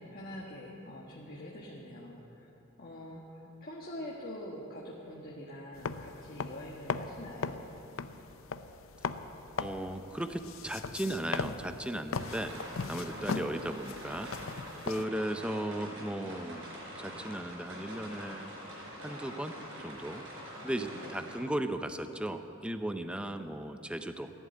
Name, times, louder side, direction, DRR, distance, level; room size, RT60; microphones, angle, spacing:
voice 1, 0.0-2.5 2.8-7.6 12.9-13.1 20.6-21.1, left 1 dB, 45° left, -3 dB, 1.6 m, -45 dB
sound 1, 5.8-15.0, left 4 dB, 75° left, 0.6 m, -39 dB
voice 2, 9.6-12.5 12.9-14.3 14.9-16.7 17.0-18.5 19.0-19.5 19.8-20.2 20.6-24.3, right 1 dB, 5° right, 8 dB, 0.6 m, -36 dB
sound 2, 12.2-21.4, equal, 70° right, 4.6 m, -45 dB
15.0 x 11.0 x 8.3 m, 3.0 s
head